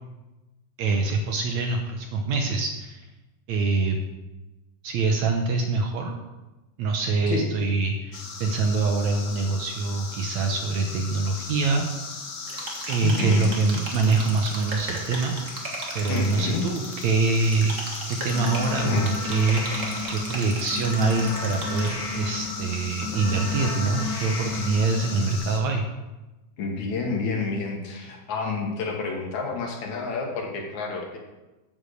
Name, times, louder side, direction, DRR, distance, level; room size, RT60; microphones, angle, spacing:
voice 1, 0.8-3.0 3.5-4.0 4.8-6.1 6.8-11.9 12.9-15.4 15.9-17.7 18.1-25.9, right 3 dB, 70° right, 3 dB, 1.8 m, -25 dB
sound 1, 8.1-25.6, left 4 dB, 80° left, 0.9 m, -38 dB
sound 2, 12.5-21.9, right 2 dB, 35° right, 1.2 m, -36 dB
voice 2, 13.0-13.6 16.1-16.6 18.7-19.1 20.0-20.1 26.6-31.2, left 4 dB, 65° left, 1 dB, 2.6 m, -29 dB
sound 3, 18.2-25.4, left 3 dB, 40° left, 2.4 m, -33 dB
8.4 x 7.4 x 6.4 m, 1.1 s
omnidirectional pair, 3.9 m